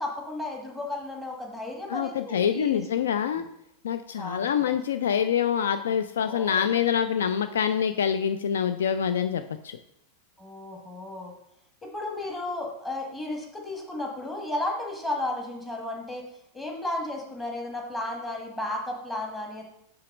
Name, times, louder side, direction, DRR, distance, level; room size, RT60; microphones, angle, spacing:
voice 1, 0.0-2.8 3.3-3.4 4.2-4.5 6.2-6.7 10.4-11.3 11.8-16.2 16.5-19.6, left 2 dB, 10° left, 0 dB, 1.5 m, -34 dB
voice 2, 1.9-3.4 3.8-9.8, left 8 dB, 65° left, 10 dB, 0.3 m, -26 dB
5.8 x 3.9 x 5.9 m, 0.77 s
figure-of-eight pair, 90°, 0 cm